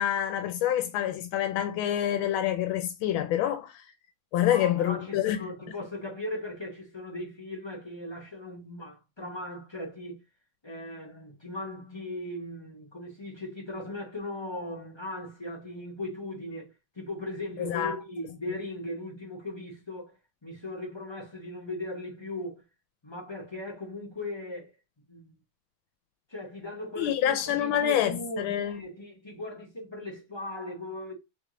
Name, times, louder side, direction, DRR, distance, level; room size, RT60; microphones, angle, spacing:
voice 1, 0.0-3.8 4.3-5.4 17.6-18.0 27.0-28.8, left 11 dB, 85° left, 1.4 m, -27 dB
voice 2, 4.4-10.2 10.6-20.1 20.4-22.6 23.0-24.7 25.1-25.4 26.3-31.1, left 1 dB, 45° left, 0.3 m, -38 dB
3.5 x 3.1 x 3.6 m
omnidirectional pair, 2.2 m